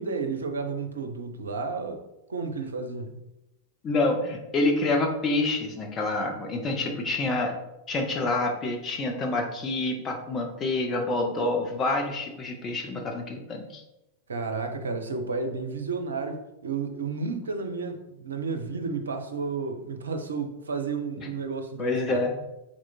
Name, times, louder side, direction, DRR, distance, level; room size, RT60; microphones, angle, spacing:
voice 1, 0.0-2.0 2.3-3.2 14.3-22.2, right 4 dB, 70° right, 0.5 m, -32 dB
voice 2, 3.8-7.5 7.9-13.8 21.8-22.4, left 2 dB, 25° left, 0.8 m, -27 dB
3.7 x 3.1 x 4.0 m
figure-of-eight pair, 90°, 0 cm